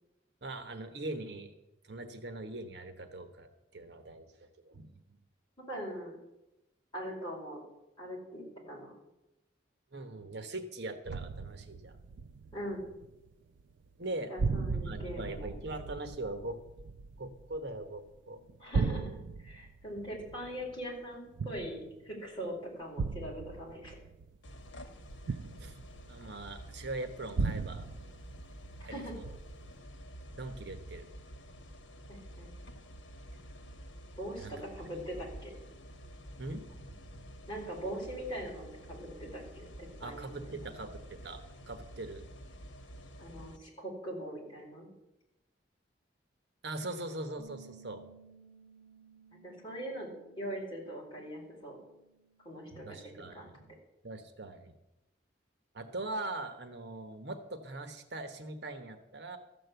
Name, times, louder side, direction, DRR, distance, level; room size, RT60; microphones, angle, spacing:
voice 1, 0.4-1.5 1.8-5.0 9.9-12.0 14.0-14.3 14.7-16.6 17.2-18.4 25.3-25.8 26.1-27.9 28.7-29.2 30.3-31.1 34.4-34.6 34.9-35.0 36.4-37.3 40.0-42.3 46.6-48.0 52.7-53.7 54.0-54.7 55.7-59.4, right 2 dB, 65° right, 7 dB, 1.2 m, -41 dB
voice 2, 5.7-6.2 6.9-7.6 8.0-9.0 12.5-12.9 14.3-15.5 18.6-24.0 28.8-29.1 32.1-32.6 34.2-35.5 37.5-40.5 43.2-44.9 49.3-50.1 50.4-51.8 52.4-53.0 53.3-53.5, equal, 25° left, -3 dB, 4.4 m, -41 dB
sound 1, 11.1-13.3 13.6-14.1 14.4-18.1 18.5-22.1 23.0-26.5 27.4-28.9 29.2-29.7, right 4 dB, 85° right, 0.4 m, -37 dB
sound 2, 24.4-43.6, equal, 80° left, 1.3 m, -49 dB
Bass guitar, 47.4-53.6, right 4 dB, 25° right, 2.9 m, -60 dB
13.5 x 7.7 x 8.0 m, 0.93 s
head